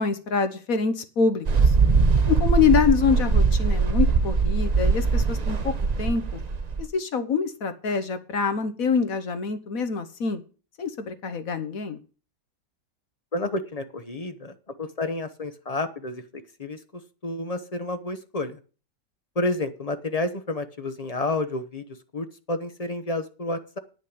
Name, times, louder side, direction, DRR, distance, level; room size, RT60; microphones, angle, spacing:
voice 1, 0.0-1.7 2.3-5.7 6.0-6.2 6.8-10.4 10.8-12.0, left 5 dB, 55° left, 10 dB, 1.3 m, -25 dB
Mechanical fan, 1.5-6.8, right 4 dB, 85° right, 0.3 m, -21 dB
voice 2, 13.3-16.8 17.2-18.6 19.4-21.8 22.1-23.8, left 2 dB, 30° left, 9 dB, 0.7 m, -30 dB
9.6 x 6.4 x 8.5 m, 0.37 s
omnidirectional pair, 1.9 m